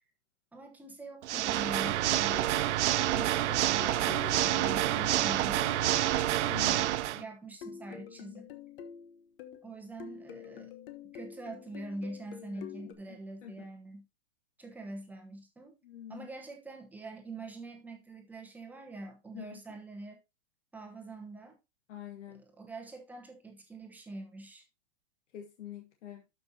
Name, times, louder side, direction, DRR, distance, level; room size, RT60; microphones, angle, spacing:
voice 1, 0.5-5.7 6.6-8.5 9.6-10.7 11.1-14.1 14.6-15.8 16.1-20.2 20.7-21.6 22.3-24.6, right 2 dB, 5° right, 1.0 m, -44 dB
Water / Mechanisms, 1.2-7.2, right 14 dB, 70° right, 0.7 m, -28 dB
sound 1, 1.3-6.9 7.6-9.7 10.0-12.9, left 10 dB, 50° left, 1.2 m, -47 dB
voice 2, 3.1-3.7 6.4-7.2 12.5-12.9 13.4-13.6 15.8-16.3 19.3-19.6 21.9-22.4 25.3-26.2, left 11 dB, 85° left, 1.5 m, -46 dB
12.0 x 5.4 x 2.8 m
supercardioid pair, 160°, 36 cm